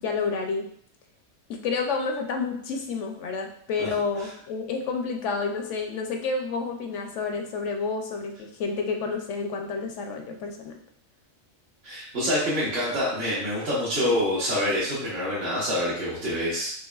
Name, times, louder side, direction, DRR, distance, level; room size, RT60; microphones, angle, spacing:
voice 1, 0.0-0.7 1.5-10.7, left 4 dB, 65° left, 4 dB, 0.9 m, -29 dB
voice 2, 11.8-16.7, left 1 dB, 50° right, -9 dB, 1.3 m, -26 dB
5.3 x 3.1 x 2.3 m, 0.63 s
omnidirectional pair, 1.4 m